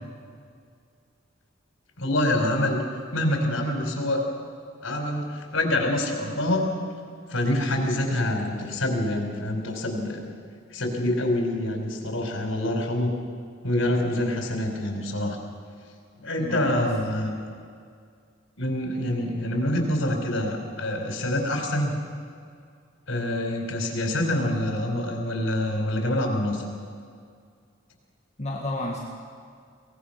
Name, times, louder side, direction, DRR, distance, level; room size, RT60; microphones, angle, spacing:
voice 1, 2.0-2.8 3.1-4.2 4.8-6.6 7.3-10.2 10.7-13.1 13.6-15.4 16.2-17.4 18.6-22.0 23.1-26.6, left 1 dB, 85° left, 2 dB, 4.4 m, -26 dB
voice 2, 16.4-17.3 28.4-29.0, left 1 dB, 35° left, -2 dB, 1.9 m, -32 dB
23.5 x 19.5 x 5.9 m, 2.2 s
head